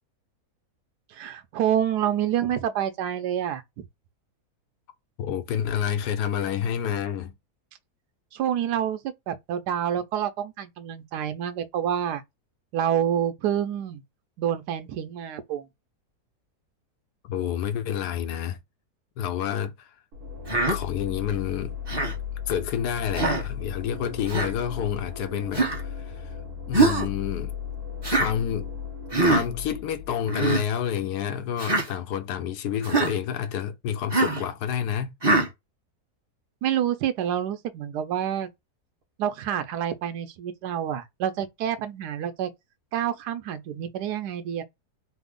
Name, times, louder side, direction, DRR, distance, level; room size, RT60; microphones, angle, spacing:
voice 1, 1.1-3.6 8.3-9.0 9.3-12.2 12.7-14.0 14.4-15.7 36.6-38.5 39.2-42.5 42.9-44.6, right 10 dB, 85° right, 1.2 m, -27 dB
voice 2, 5.2-7.3 17.2-18.6 19.2-19.9 20.7-21.7 22.5-26.3 26.7-27.6 28.1-28.7 29.2-35.1, left 9 dB, 85° left, 1.2 m, -29 dB
sound 1, 20.1-30.9, left 7 dB, 70° right, 1.4 m, -36 dB
Human voice, 20.5-20.8 21.9-22.2 23.1-23.5 24.3-24.5 25.5-25.8 26.7-27.1 28.0-28.3 29.1-29.4 30.3-30.6 31.6-31.9 32.8-33.1 34.1-34.4 35.2-35.5, right 3 dB, 20° right, 0.7 m, -23 dB
3.4 x 2.0 x 3.6 m
omnidirectional pair, 1.7 m